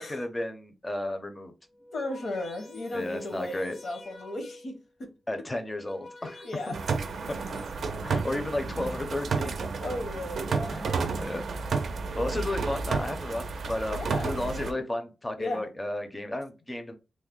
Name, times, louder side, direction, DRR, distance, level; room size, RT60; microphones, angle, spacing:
voice 1, 0.0-1.5 2.9-3.8 5.3-6.7 8.0-9.6 10.7-11.4 12.2-16.9, left 1 dB, 15° left, 0.5 m, -33 dB
sound 1, 1.6-4.8 5.5-7.7, left 1 dB, 85° left, 1.8 m, -48 dB
voice 2, 1.9-5.1 6.4-6.7 9.8-10.9 13.9-14.8 15.4-15.7, left 2 dB, 65° left, 0.8 m, -36 dB
sound 2, 6.7-14.7, right 4 dB, 75° right, 0.4 m, -31 dB
3.1 x 2.1 x 3.6 m
wide cardioid pair, 165°, 0 cm